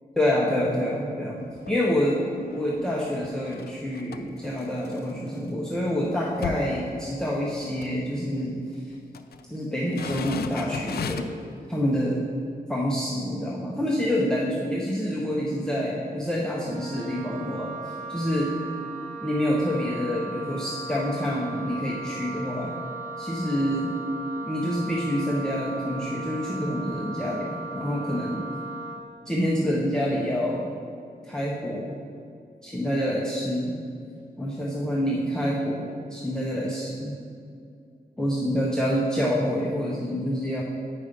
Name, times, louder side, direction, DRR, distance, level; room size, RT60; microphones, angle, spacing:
voice 1, 0.2-2.3 2.5-8.6 9.5-11.3 11.7-12.2 12.7-18.5 19.2-22.7 23.2-23.9 24.4-28.5 29.3-30.7 31.2-32.0 32.6-33.8 34.4-37.2 38.2-40.6, equal, 5° left, -4 dB, 0.8 m, -27 dB
sound 1, 1.4-1.9 2.3-5.4 5.8-5.9 6.1-7.5 7.8-8.0 8.8-9.4 9.8-11.5 12.0-12.1, left 6 dB, 80° left, 0.4 m, -37 dB
Wind instrument woodwind instrument, 16.5-29.0, right 3 dB, 55° right, 1.4 m, -37 dB
8.7 x 5.3 x 5.1 m, 2.4 s
wide cardioid pair, 120°, 16 cm